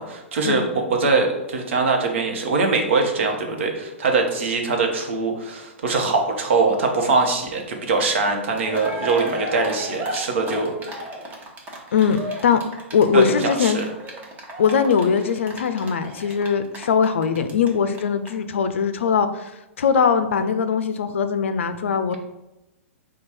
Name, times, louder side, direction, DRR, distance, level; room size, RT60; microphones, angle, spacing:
voice 1, 0.0-10.9 13.1-13.8, right 3 dB, 60° right, 2 dB, 1.0 m, -22 dB
Cheering, 8.3-8.4 8.5-17.7 17.9-18.0 18.3-18.4, equal, 25° right, 1.1 m, -34 dB
voice 2, 11.9-12.6 12.9-13.8 14.6-22.1, left 6 dB, 65° left, 10 dB, 0.4 m, -21 dB
4.5 x 2.3 x 4.2 m, 0.96 s
figure-of-eight pair, 110°, 7 cm